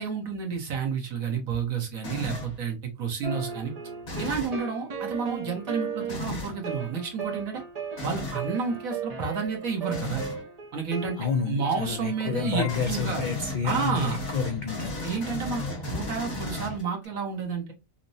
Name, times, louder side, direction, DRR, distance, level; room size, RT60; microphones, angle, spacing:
voice 1, 0.0-3.7 4.2-7.6 8.0-10.2 10.7-13.2 13.6-14.2 15.0-17.7, right 5 dB, 85° right, 1.6 m, -30 dB
sound 1, 2.0-2.6 4.0-4.6 6.1-6.6 8.0-8.5 9.9-10.4 12.7-17.1, left 2 dB, 50° left, 1.5 m, -34 dB
sound 2, 3.2-12.8, right 5 dB, 35° right, 0.7 m, -36 dB
voice 2, 11.2-14.9, left 6 dB, 70° left, 0.4 m, -29 dB
5.8 x 2.0 x 2.7 m
omnidirectional pair, 1.4 m